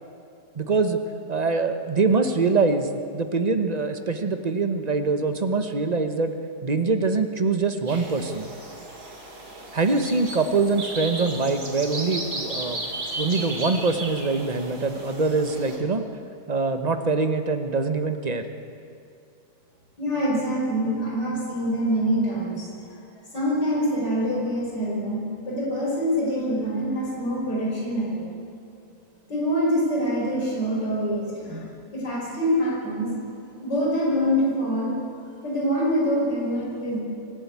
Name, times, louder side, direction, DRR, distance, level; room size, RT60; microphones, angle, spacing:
voice 1, 0.5-1.0 1.3-2.9 3.1-6.3 6.6-8.5 9.7-12.8 13.2-16.0 16.5-18.4, right 4 dB, 30° right, 7 dB, 1.0 m, -24 dB
sound 1, 7.9-15.8, right 2 dB, 60° right, 3.5 m, -35 dB
voice 2, 20.0-22.7 23.3-28.3 29.3-31.6 31.9-33.1 33.6-34.9 35.4-37.0, equal, 80° left, -5 dB, 5.9 m, -25 dB
25.0 x 12.5 x 8.5 m, 2.5 s
omnidirectional pair, 1.8 m